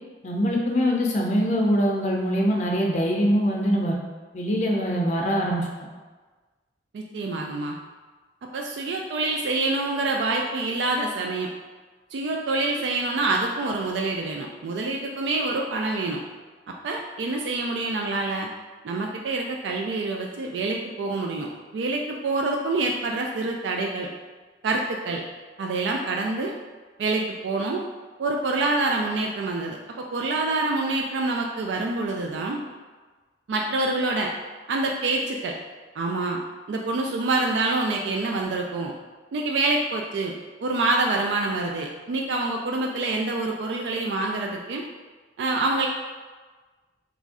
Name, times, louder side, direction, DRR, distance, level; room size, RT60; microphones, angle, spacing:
voice 1, 0.2-3.9 4.3-5.7, equal, 40° left, -1 dB, 0.4 m, -23 dB
voice 2, 6.9-7.8 8.5-11.5 12.1-16.2 16.7-18.5 18.8-24.1 24.6-25.2 25.6-26.5 27.0-27.8 28.2-32.6 33.5-34.3 34.7-35.5 36.0-36.4 36.7-38.9 39.3-40.3 40.6-44.8 45.4-45.9, right 2 dB, 80° right, 1 dB, 0.3 m, -26 dB
3.0 x 2.5 x 3.6 m, 1.3 s
head